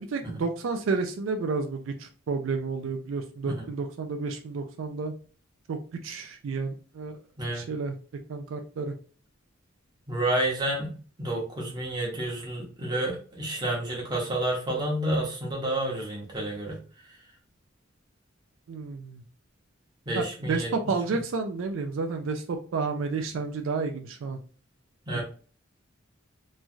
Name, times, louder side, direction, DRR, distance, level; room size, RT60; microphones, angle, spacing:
voice 1, 0.0-5.1 5.7-7.2 7.5-7.9 8.3-9.0 18.7-19.2 20.1-24.4 25.1-25.2, right 4 dB, 75° right, 5 dB, 0.4 m, -31 dB
voice 2, 10.1-10.9 11.2-16.8 20.1-20.7 25.1-25.2, right 1 dB, 20° right, -2 dB, 0.9 m, -30 dB
3.1 x 2.3 x 2.6 m, 0.40 s
head